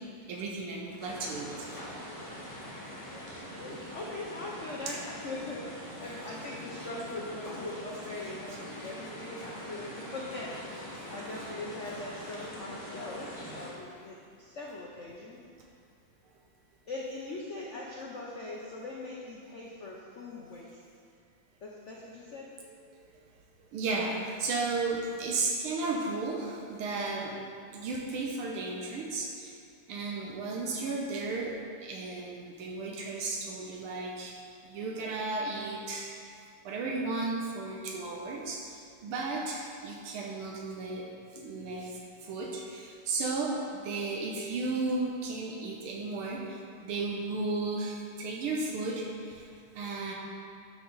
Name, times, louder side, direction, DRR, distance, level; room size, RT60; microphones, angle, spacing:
voice 1, 0.3-1.7 4.9-5.0 23.7-27.3 27.7-29.6 29.9-31.6 31.8-34.4 34.6-36.1 36.7-41.0 41.3-49.5 49.8-50.1, right 3 dB, 85° right, -1 dB, 1.7 m, -34 dB
sound 1, 1.0-13.7, equal, 20° left, 1.5 m, -43 dB
voice 2, 3.6-15.4 16.9-20.8 21.6-22.5, left 2 dB, 70° left, -3 dB, 0.6 m, -41 dB
12.0 x 4.9 x 4.0 m, 2.4 s
omnidirectional pair, 2.4 m